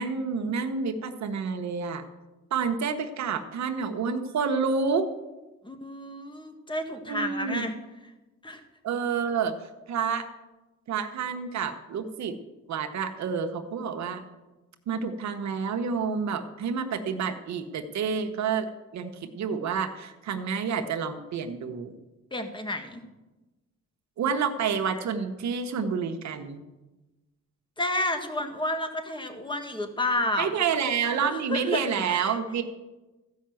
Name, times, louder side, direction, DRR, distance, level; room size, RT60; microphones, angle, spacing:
voice 1, 0.0-2.0 2.5-5.1 7.1-7.7 8.8-9.6 9.9-10.3 10.9-12.4 12.7-14.3 14.9-18.7 18.9-22.0 24.2-26.6 30.4-32.6, right 6 dB, 65° right, 7 dB, 1.1 m, -29 dB
voice 2, 5.6-7.7 8.4-8.6 22.3-23.0 27.8-30.6 31.1-31.8 32.1-32.3, left 1 dB, 15° left, 6 dB, 1.7 m, -31 dB
14.5 x 5.6 x 7.6 m, 1.1 s
cardioid pair, 90°, 30 cm